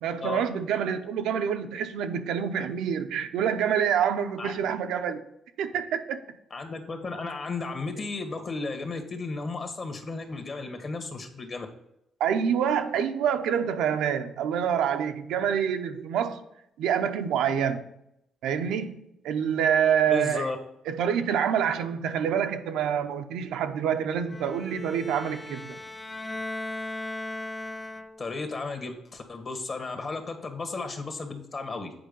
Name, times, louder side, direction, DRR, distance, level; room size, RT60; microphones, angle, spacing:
voice 1, 0.0-5.2 5.6-6.2 12.2-16.4 16.8-17.9 18.4-20.5 20.9-25.8, right 8 dB, 85° right, 0.6 m, -27 dB
voice 2, 6.5-11.7 20.1-20.6 28.2-31.9, left 3 dB, 40° left, 1.5 m, -34 dB
Bowed string instrument, 24.3-28.4, left 2 dB, 20° left, 0.4 m, -37 dB
7.8 x 4.8 x 5.3 m
cardioid pair, 90°, 0 cm